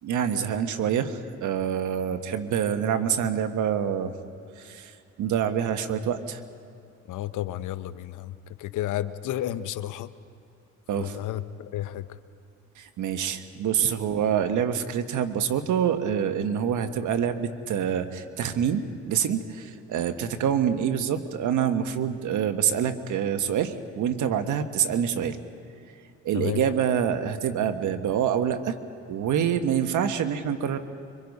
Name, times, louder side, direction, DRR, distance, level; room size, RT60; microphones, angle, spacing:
voice 1, 0.0-4.1 4.6-6.4 10.9-11.2 12.8-25.4 26.2-28.7 29.1-30.8, right 8 dB, 80° right, 8 dB, 1.5 m, -26 dB
voice 2, 7.1-10.1 10.9-12.1 13.8-13.9 26.3-26.6, left 13 dB, 85° left, 13 dB, 0.9 m, -32 dB
25.5 x 24.0 x 5.4 m, 2.7 s
cardioid pair, 90°, 30 cm